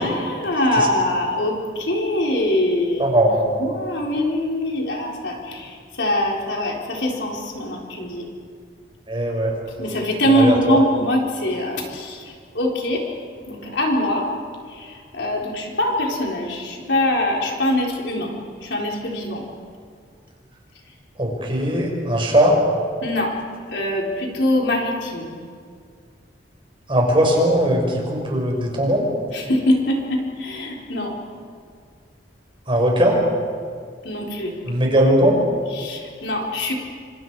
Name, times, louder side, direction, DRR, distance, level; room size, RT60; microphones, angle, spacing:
voice 1, 0.0-3.1 3.5-8.3 9.8-13.0 13.5-14.3 14.7-18.3 18.6-19.4 23.0-23.4 23.7-25.4 29.3-31.1 34.0-34.6 35.7-36.7, left 1 dB, 70° left, -1 dB, 4.2 m, -23 dB
voice 2, 3.0-3.4 9.1-9.5 10.3-10.8 21.2-22.6 26.9-29.1 32.7-33.2 34.7-35.4, right 1 dB, 30° right, 0 dB, 5.3 m, -19 dB
28.0 x 26.5 x 4.8 m, 2.1 s
head